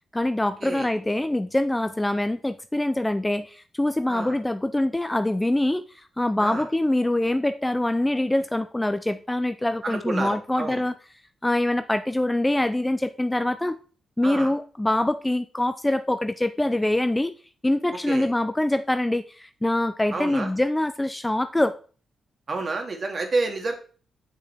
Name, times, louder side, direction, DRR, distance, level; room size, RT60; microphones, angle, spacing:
voice 1, 0.1-10.9 11.4-13.8 14.2-17.3 17.6-21.8, left 1 dB, 10° left, 10 dB, 0.4 m, -24 dB
voice 2, 9.8-10.8 14.2-14.5 18.1-18.3 20.1-20.5 22.5-23.7, right 3 dB, 40° right, 3 dB, 2.1 m, -29 dB
8.2 x 6.9 x 3.5 m, 0.39 s
cardioid pair, 115°, 0 cm